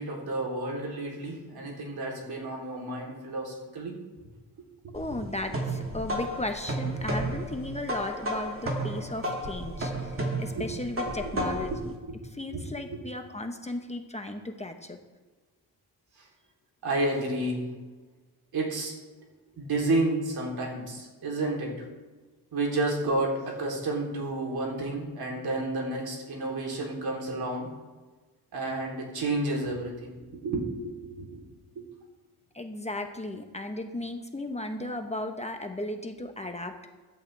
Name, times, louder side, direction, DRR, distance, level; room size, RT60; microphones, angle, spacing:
voice 1, 0.0-3.9 4.8-5.0 9.7-9.8 10.5-10.7 11.3-12.2 12.5-12.6 16.2-16.3 16.8-17.7 18.5-18.9 19.6-21.8 22.5-27.7 28.5-31.4 31.8-31.9, right 2 dB, 65° right, -1 dB, 3.6 m, -31 dB
voice 2, 4.9-11.9 12.2-15.0 32.5-36.7, left 1 dB, 15° left, 4 dB, 1.1 m, -35 dB
sound 1, 4.9-11.8, right 1 dB, 30° right, 2.6 m, -32 dB
15.0 x 11.0 x 3.5 m, 1.3 s
cardioid pair, 90°, 40 cm